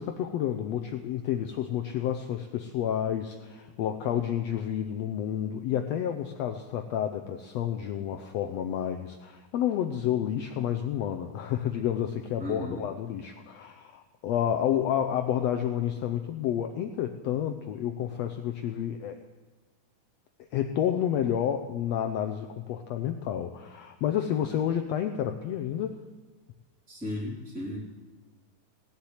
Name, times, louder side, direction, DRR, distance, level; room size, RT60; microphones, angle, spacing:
voice 1, 0.0-19.2 20.5-26.0, left 10 dB, 90° left, 6 dB, 1.5 m, -30 dB
voice 2, 12.4-12.9 26.9-27.8, equal, 5° right, -6 dB, 2.7 m, -35 dB
17.5 x 7.4 x 9.5 m, 1.3 s
omnidirectional pair, 3.8 m